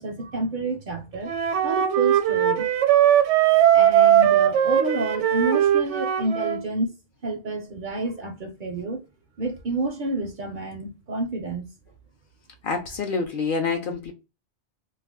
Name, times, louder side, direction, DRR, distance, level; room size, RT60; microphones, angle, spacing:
voice 1, 0.0-1.3 1.6-2.7 3.7-6.9 7.2-9.0 9.4-11.7, right 2 dB, 60° right, 0.6 m, -29 dB
Wind instrument woodwind instrument, 1.3-6.6, right 10 dB, 80° right, 0.9 m, -19 dB
voice 2, 12.6-14.1, left 4 dB, 60° left, 0.6 m, -27 dB
2.3 x 2.2 x 3.4 m
omnidirectional pair, 1.2 m